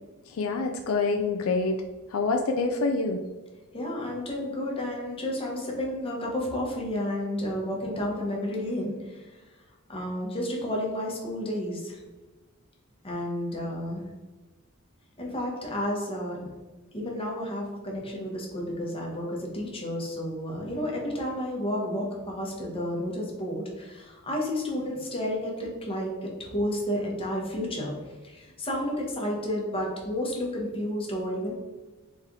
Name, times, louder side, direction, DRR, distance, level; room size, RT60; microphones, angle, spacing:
voice 1, 0.3-1.8 2.1-3.2, left 3 dB, 75° left, 4 dB, 0.4 m, -26 dB
voice 2, 3.7-9.2 9.9-12.0 13.0-14.0 15.2-16.5 16.9-28.0 28.2-31.5, left 1 dB, 25° left, -2 dB, 1.1 m, -31 dB
4.1 x 3.3 x 3.7 m, 1.2 s
head